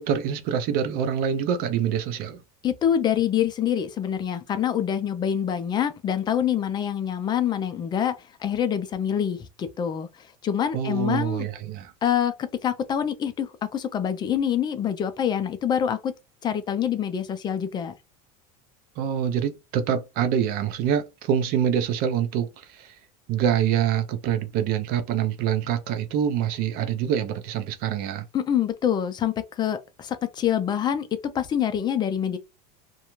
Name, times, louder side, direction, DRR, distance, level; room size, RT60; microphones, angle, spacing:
voice 1, 0.0-2.4 10.7-11.9 19.0-22.9 23.3-28.2, right 9 dB, 50° right, 0.5 m, -25 dB
voice 2, 2.6-11.4 12.0-16.1 16.4-17.9 28.3-31.1 31.3-32.4, left 9 dB, 20° left, 0.4 m, -26 dB
2.4 x 2.2 x 3.0 m
supercardioid pair, 145°, 20 cm